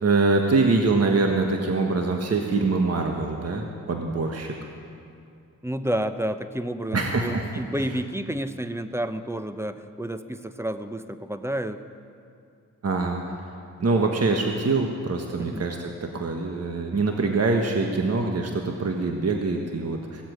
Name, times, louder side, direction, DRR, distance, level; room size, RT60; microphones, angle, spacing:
voice 1, 0.0-4.5 6.9-7.4 7.8-7.9 12.8-13.3 13.8-20.2, right 3 dB, 45° right, 2 dB, 1.5 m, -24 dB
voice 2, 5.6-11.8 15.4-15.7, right 1 dB, 10° right, 10 dB, 0.9 m, -30 dB
16.5 x 7.8 x 9.1 m, 2.4 s
supercardioid pair, 45°, 34 cm